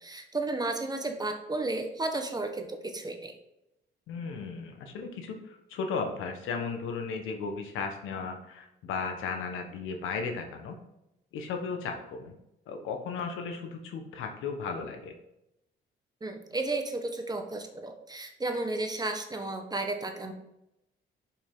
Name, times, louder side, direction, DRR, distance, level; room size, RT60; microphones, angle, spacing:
voice 1, 0.0-3.3 16.2-20.3, right 2 dB, 20° right, 5 dB, 1.3 m, -33 dB
voice 2, 4.1-10.8 11.3-12.3 12.7-15.1, left 5 dB, 90° left, 4 dB, 1.3 m, -35 dB
7.0 x 5.9 x 3.7 m, 0.86 s
cardioid pair, 90°, 20 cm